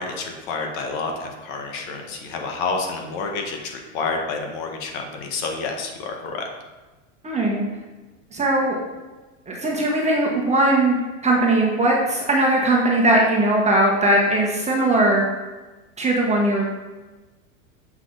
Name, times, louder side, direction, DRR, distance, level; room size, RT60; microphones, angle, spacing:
voice 1, 0.0-6.5, left 4 dB, 55° left, 3 dB, 1.5 m, -29 dB
voice 2, 7.2-7.6 8.3-8.8 9.5-11.0 11.2-15.2 16.0-16.7, right 1 dB, 15° right, -2 dB, 1.3 m, -19 dB
7.5 x 6.0 x 4.0 m, 1.2 s
hypercardioid pair, 115°, 39 cm